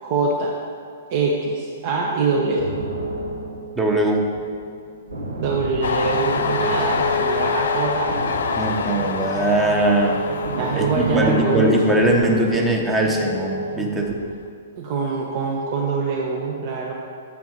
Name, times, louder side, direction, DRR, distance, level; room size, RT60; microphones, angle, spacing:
voice 1, 0.0-0.6 1.1-2.7 5.4-8.2 10.6-11.7 14.8-16.9, right 4 dB, 45° right, -2 dB, 0.7 m, -24 dB
sound 1, 1.7-14.0, equal, 65° right, 1.3 m, -31 dB
sound 2, 2.6-6.9 7.2-12.2, right 1 dB, 90° right, 0.9 m, -33 dB
voice 2, 3.8-4.2 8.5-10.2 10.8-14.2, right 1 dB, 15° right, 0 dB, 0.9 m, -20 dB
Train, 5.8-13.2 13.6-14.4, left 5 dB, 70° left, 0.4 m, -27 dB
7.1 x 3.6 x 6.1 m, 2.3 s
figure-of-eight pair, 110°, 0 cm